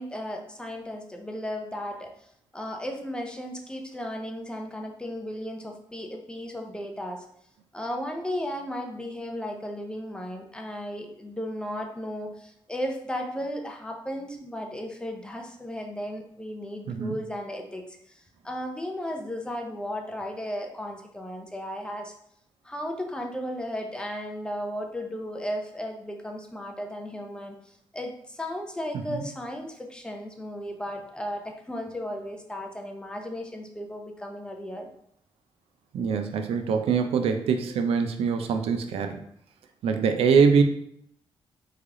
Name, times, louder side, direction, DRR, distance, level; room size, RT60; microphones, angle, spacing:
voice 1, 0.0-2.1 2.5-7.2 7.7-22.1 22.6-27.6 27.9-34.9, equal, 10° left, 2 dB, 0.5 m, -35 dB
voice 2, 35.9-39.2 39.8-40.6, right 6 dB, 80° right, 6 dB, 0.4 m, -23 dB
3.2 x 2.3 x 3.6 m, 0.69 s
cardioid pair, 105°, 10 cm